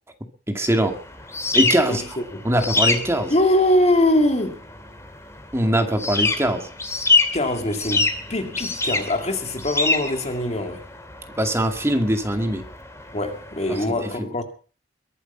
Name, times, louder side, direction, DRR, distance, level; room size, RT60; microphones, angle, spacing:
voice 1, 0.5-0.9 1.5-2.0 2.4-3.3 5.5-6.6 11.4-12.6 13.7-14.1, right 1 dB, 15° right, 2.2 m, -22 dB
sound 1, 0.7-13.8, left 3 dB, 15° left, 2.5 m, -26 dB
voice 2, 1.9-2.5 3.3-4.6 7.3-10.8 13.1-14.4, left 1 dB, 40° left, 2.2 m, -22 dB
22.5 x 8.3 x 5.7 m
head